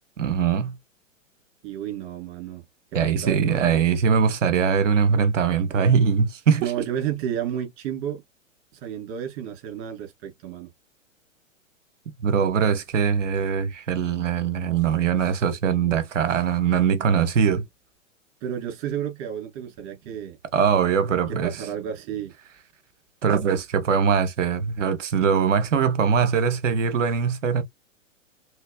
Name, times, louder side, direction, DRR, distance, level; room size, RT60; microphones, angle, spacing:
voice 1, 0.2-0.8 2.9-6.7 12.2-17.6 20.5-21.5 23.2-27.6, right 6 dB, 65° right, 1.3 m, -22 dB
voice 2, 1.6-2.6 3.0-3.8 6.6-8.2 8.7-10.7 18.4-20.4 21.3-22.3, right 9 dB, 40° right, 3.4 m, -31 dB
5.6 x 3.3 x 2.3 m
figure-of-eight pair, 105°, 39 cm